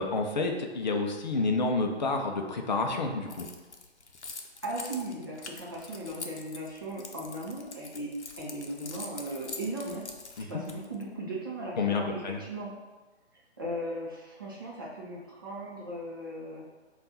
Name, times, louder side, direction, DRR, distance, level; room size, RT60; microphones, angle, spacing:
voice 1, 0.0-3.5 10.4-10.5 11.8-12.4, left 3 dB, 40° left, 3 dB, 0.5 m, -29 dB
Keys jangling, 3.3-11.0, left 4 dB, 80° left, 0.7 m, -44 dB
voice 2, 4.6-8.1 8.4-10.0 10.5-12.7 13.6-16.6, right 1 dB, 20° right, -6 dB, 0.5 m, -37 dB
5.2 x 2.4 x 3.9 m, 1.2 s
figure-of-eight pair, 140°, 34 cm